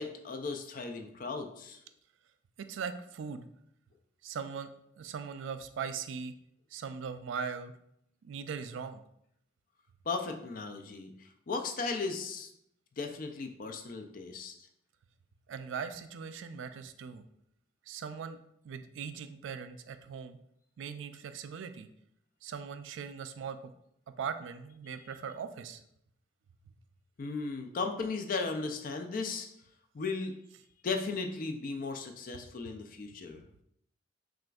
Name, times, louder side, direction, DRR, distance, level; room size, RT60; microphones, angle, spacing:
voice 1, 0.0-1.8 10.1-12.5 13.0-14.5 27.2-29.5 29.9-30.3 30.8-33.4, left 4 dB, 45° left, 5 dB, 0.4 m, -36 dB
voice 2, 2.6-3.5 4.2-4.7 5.0-6.3 6.7-7.7 8.2-9.0 15.5-17.2 17.9-18.4 18.6-20.4 20.8-21.9 22.4-23.7 24.2-25.8, right 6 dB, 80° right, 10 dB, 0.3 m, -40 dB
6.1 x 2.5 x 2.3 m, 0.74 s
head